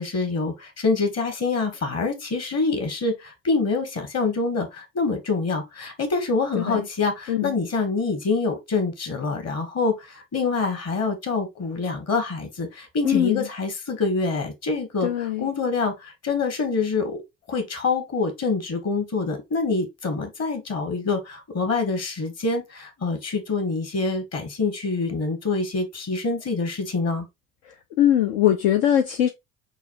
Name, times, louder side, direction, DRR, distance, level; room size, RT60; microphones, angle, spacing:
voice 1, 0.0-17.2 17.5-27.2, left 4 dB, 40° left, 1.4 m, -26 dB
voice 2, 13.0-13.4 15.0-15.5 28.0-29.3, left 11 dB, 70° left, 0.6 m, -21 dB
5.6 x 2.4 x 2.6 m
figure-of-eight pair, 55°, 41 cm